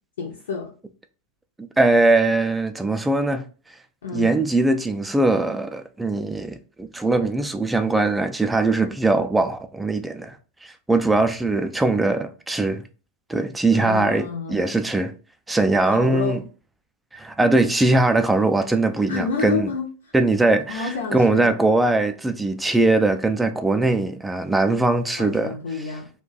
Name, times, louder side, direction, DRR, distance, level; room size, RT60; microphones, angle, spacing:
voice 1, 0.2-0.7 4.0-4.4 13.7-14.7 15.9-16.4 19.1-19.9 20.7-21.6 25.2-26.1, left 4 dB, 65° left, 0.6 m, -29 dB
voice 2, 1.8-3.4 4.1-10.4 10.6-12.8 13.3-15.1 15.5-16.4 17.1-19.7 20.1-25.6, right 2 dB, 5° right, 0.3 m, -21 dB
2.5 x 2.2 x 3.8 m
figure-of-eight pair, 90°, 0 cm